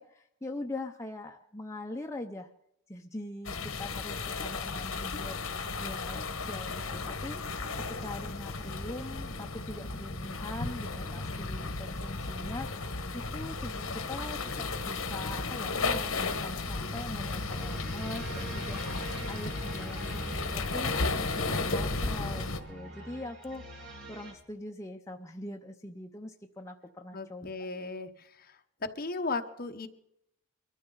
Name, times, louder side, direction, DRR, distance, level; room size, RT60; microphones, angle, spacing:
voice 1, 0.0-2.5 2.9-21.0 21.4-27.7, left 1 dB, 15° left, 3 dB, 0.6 m, -43 dB
sound 1, 3.4-22.6, left 3 dB, 70° left, 1.4 m, -34 dB
Organ, 8.5-19.2, left 1 dB, ahead, 5.0 m, -58 dB
sound 2, 17.1-24.3, right 2 dB, 55° right, 7.9 m, -44 dB
voice 2, 27.1-29.9, left 3 dB, 40° left, 6 dB, 1.0 m, -36 dB
22.5 x 14.0 x 4.0 m, 0.77 s
head